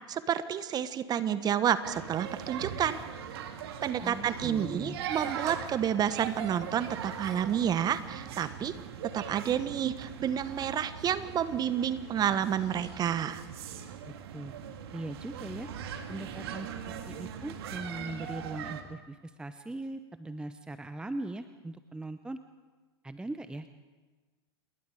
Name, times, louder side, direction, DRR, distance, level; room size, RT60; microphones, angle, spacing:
voice 1, 0.1-3.0 3.8-8.8 9.0-13.4, right 9 dB, 30° right, 13 dB, 1.3 m, -30 dB
sound 1, 1.8-18.8, right 8 dB, 60° right, 2.2 m, -41 dB
voice 2, 4.0-5.0 14.3-14.5 14.9-15.7 16.1-22.4 23.0-23.7, right 2 dB, 5° right, 10 dB, 0.8 m, -40 dB
28.5 x 21.0 x 5.0 m, 1.3 s
hypercardioid pair, 95°, 14 cm